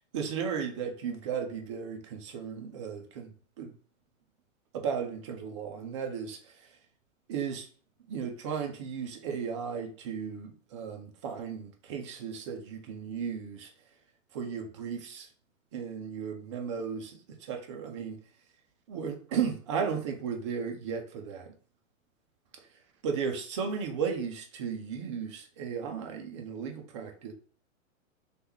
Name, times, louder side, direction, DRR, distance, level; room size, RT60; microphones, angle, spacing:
voice 1, 0.1-3.7 4.7-6.7 7.3-7.7 8.1-13.7 14.3-15.3 15.7-18.2 18.9-21.5 23.0-27.3, right 6 dB, 25° right, 0.3 m, -35 dB
3.3 x 2.4 x 3.0 m
hypercardioid pair, 120°, 40 cm